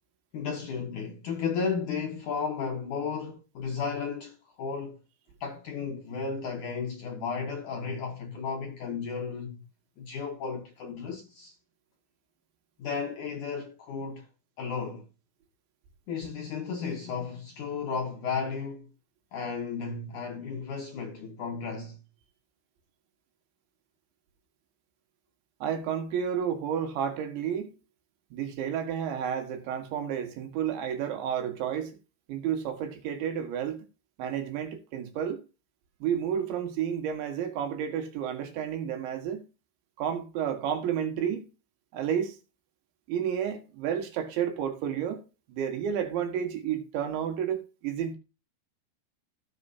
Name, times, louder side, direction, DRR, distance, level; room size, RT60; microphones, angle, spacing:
voice 1, 0.3-5.0 5.4-9.6 10.0-11.6 12.8-14.3 14.6-15.1 16.1-18.9 19.3-22.0, left 5 dB, 65° left, 2.0 m, -34 dB
voice 2, 25.6-27.7 28.3-31.9 32.3-33.9 34.2-35.4 36.0-39.5 40.0-41.5 41.9-42.4 43.1-45.2 45.5-48.2, right 8 dB, 80° right, 3.9 m, -31 dB
17.5 x 6.8 x 2.8 m
omnidirectional pair, 5.2 m